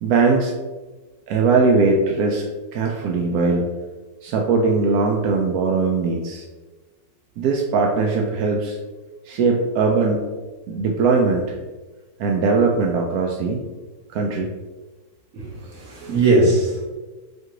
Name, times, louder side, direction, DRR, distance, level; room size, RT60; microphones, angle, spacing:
voice 1, 0.0-0.5 1.3-2.5 2.7-3.7 4.2-6.4 7.4-8.8 9.2-10.3 10.7-11.6 12.2-13.6 14.1-14.5, right 4 dB, 70° right, 0 dB, 0.9 m, -20 dB
voice 2, 15.3-16.8, right 2 dB, 50° right, -5 dB, 1.6 m, -19 dB
4.4 x 2.5 x 4.6 m, 1.2 s
omnidirectional pair, 1.9 m